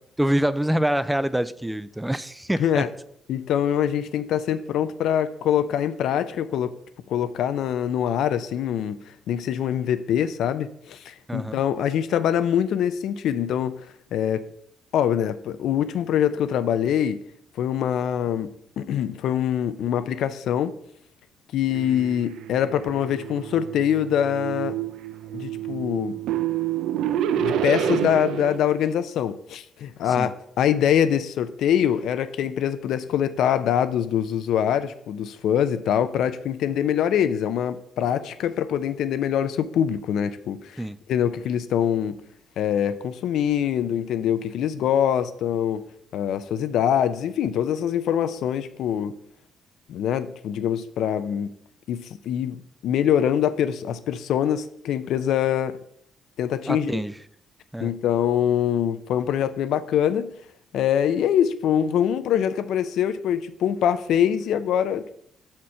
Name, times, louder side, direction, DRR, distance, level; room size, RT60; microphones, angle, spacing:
voice 1, 0.2-2.8 11.3-11.6 30.1-30.3 40.8-41.0 56.7-57.1 57.7-57.9, right 1 dB, 5° right, 0.4 m, -25 dB
voice 2, 3.3-6.7 7.1-9.0 9.3-13.8 14.1-14.5 14.9-17.2 17.6-20.7 21.5-24.8 25.3-26.2 27.4-40.8 41.1-42.2 42.6-45.8 46.1-49.1 49.9-51.5 51.9-55.8 56.4-57.0 57.8-60.3 60.7-65.1, left 9 dB, 80° left, 0.4 m, -24 dB
sound 1, 21.7-28.6, right 10 dB, 85° right, 0.4 m, -28 dB
6.2 x 4.4 x 5.5 m
cardioid pair, 90°, 0 cm